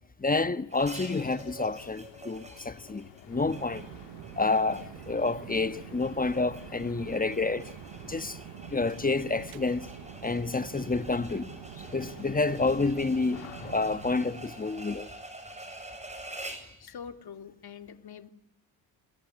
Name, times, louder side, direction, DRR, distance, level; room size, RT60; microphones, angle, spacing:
voice 1, 0.2-3.9 4.4-7.7 8.0-8.4 8.7-9.9 10.2-11.5 11.8-15.1, left 3 dB, 15° left, 1.2 m, -29 dB
sound 1, 0.7-14.9, left 12 dB, 85° left, 2.2 m, -52 dB
sound 2, 0.7-16.8, right 1 dB, 15° right, 7.6 m, -47 dB
sound 3, 3.3-14.3, right 16 dB, 65° right, 1.0 m, -46 dB
voice 2, 16.5-18.3, left 7 dB, 50° left, 2.6 m, -45 dB
27.5 x 22.0 x 9.6 m
supercardioid pair, 65°, 48 cm